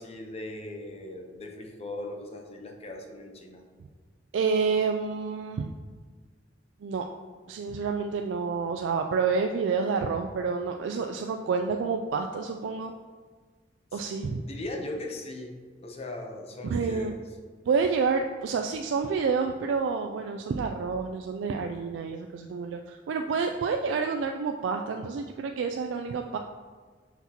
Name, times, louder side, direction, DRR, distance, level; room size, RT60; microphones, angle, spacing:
voice 1, 0.0-3.6 13.9-14.0 14.4-17.2, left 1 dB, 35° left, 3 dB, 0.7 m, -39 dB
voice 2, 4.3-5.7 6.8-7.0 7.5-12.9 13.9-14.4 16.6-17.2 17.7-26.4, right 5 dB, 90° right, 4 dB, 0.3 m, -28 dB
5.9 x 5.9 x 2.8 m, 1.5 s
head